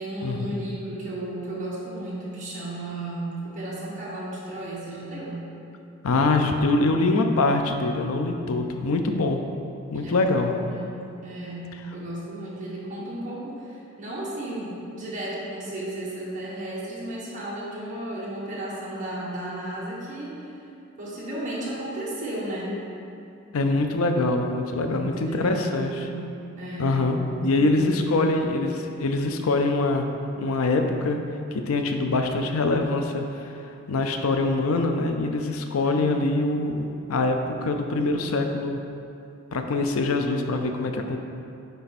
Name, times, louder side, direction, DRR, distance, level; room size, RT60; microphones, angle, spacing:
voice 1, 0.0-5.5 9.9-20.5 21.0-22.8 24.9-26.3 26.6-27.0 27.3-28.3 35.8-36.3, right 1 dB, 35° right, -7 dB, 1.5 m, -34 dB
voice 2, 6.0-9.4 9.9-10.5 23.5-25.9 26.8-27.2 27.4-30.1 30.4-31.2 31.7-33.5 33.9-38.8 39.5-41.2, left 2 dB, 80° left, 5 dB, 0.5 m, -24 dB
9.3 x 3.4 x 4.2 m, 2.6 s
head